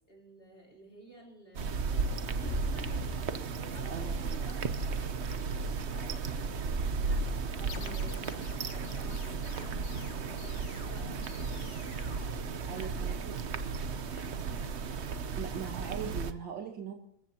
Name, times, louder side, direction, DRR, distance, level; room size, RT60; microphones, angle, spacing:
voice 1, 0.1-3.1 3.6-8.2 8.6-11.8 12.7-13.4 14.1-14.6, equal, 30° left, -1 dB, 4.1 m, -53 dB
sound 1, 1.5-16.3, right 4 dB, 50° right, 0.9 m, -34 dB
sound 2, 2.4-6.3, left 4 dB, 5° left, 2.6 m, -45 dB
voice 2, 3.9-4.4 12.7-13.4 15.4-16.9, right 7 dB, 75° right, 2 dB, 2.1 m, -40 dB
sound 3, 7.7-13.1, left 6 dB, 70° left, 2.0 m, -50 dB
26.5 x 15.0 x 2.9 m, 0.73 s
omnidirectional pair, 2.1 m